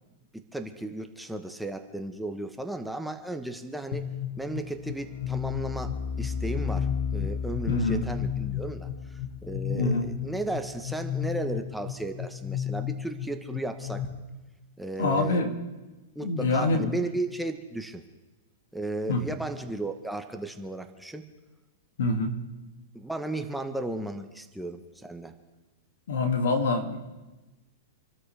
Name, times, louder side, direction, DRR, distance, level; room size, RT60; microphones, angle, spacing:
voice 1, 0.5-4.1 4.4-14.1 14.8-15.5 16.1-18.0 18.7-21.2 22.9-25.3, right 2 dB, ahead, 5 dB, 1.0 m, -35 dB
sound 1, 3.9-14.1, left 8 dB, 55° left, 1.5 m, -33 dB
voice 2, 7.7-8.0 9.7-10.1 15.0-15.6 16.2-17.0 19.1-19.2 22.0-22.3 26.1-27.0, left 3 dB, 80° left, 5 dB, 2.3 m, -25 dB
27.5 x 13.0 x 3.4 m, 1.1 s
hypercardioid pair, 140°, 0 cm